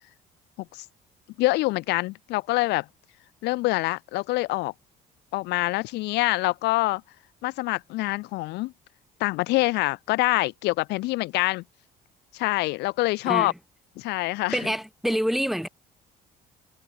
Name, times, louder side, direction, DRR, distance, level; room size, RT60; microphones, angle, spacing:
voice 1, 1.4-2.9 3.4-4.7 5.3-7.0 7.4-8.7 9.2-11.6 12.3-13.5 14.0-14.6, left 21 dB, 90° left, 0.9 m, -25 dB
voice 2, 14.5-15.7, equal, ahead, 7.0 m, -26 dB
cardioid pair, 110°, 17 cm